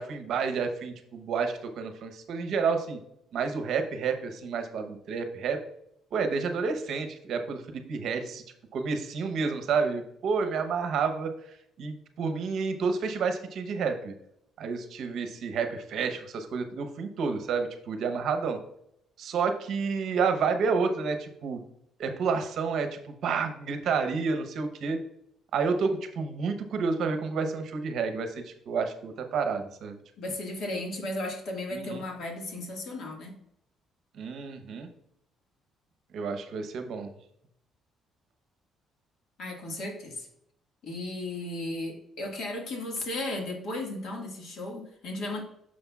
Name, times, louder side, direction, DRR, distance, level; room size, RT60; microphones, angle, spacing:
voice 1, 0.0-3.0 3.3-5.6 6.1-8.4 8.7-14.1 14.6-18.6 19.2-21.6 22.0-25.0 25.5-30.0 31.7-32.0 34.2-34.9 36.1-37.1, right 5 dB, 55° right, 7 dB, 0.9 m, -30 dB
voice 2, 30.2-33.4 39.4-40.3 40.8-45.4, left 2 dB, 50° left, 1 dB, 1.8 m, -35 dB
9.6 x 6.4 x 2.4 m, 0.75 s
cardioid pair, 175°, 0 cm